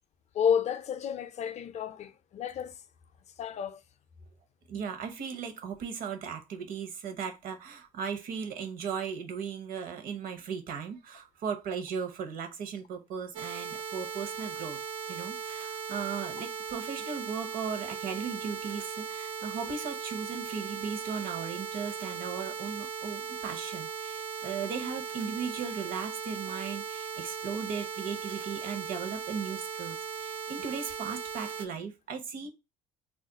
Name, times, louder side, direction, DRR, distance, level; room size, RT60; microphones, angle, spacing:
voice 1, 0.3-2.7 3.4-3.8, left 8 dB, 40° left, 0.5 m, -30 dB
voice 2, 4.7-14.8 15.1-32.5, right 6 dB, 55° right, 0.8 m, -37 dB
sound 1, 13.3-31.6, right 7 dB, 85° right, 0.6 m, -38 dB
2.4 x 2.1 x 3.9 m
supercardioid pair, 80°, 17 cm